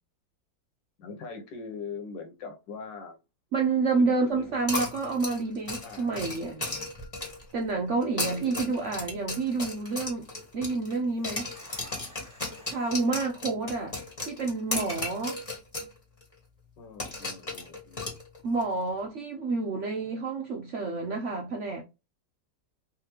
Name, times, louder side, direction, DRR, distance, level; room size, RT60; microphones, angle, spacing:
voice 1, 1.0-3.2 3.9-4.6 5.8-6.2 7.9-8.7 16.8-18.0, left 4 dB, 90° left, 1.6 m, -42 dB
voice 2, 3.5-6.6 7.5-10.3 10.5-11.5 12.7-13.9 14.2-15.4 18.4-21.8, right 3 dB, 70° right, 0.7 m, -29 dB
sound 1, 4.7-7.5 8.0-11.0 11.2-15.9 16.2-16.3 17.0-18.6, left 2 dB, 20° left, 1.6 m, -35 dB
sound 2, 6.3-7.9 8.2-8.3 8.9-9.3 11.0-13.0, right 2 dB, 5° right, 1.5 m, -50 dB
3.5 x 3.2 x 3.0 m
omnidirectional pair, 1.9 m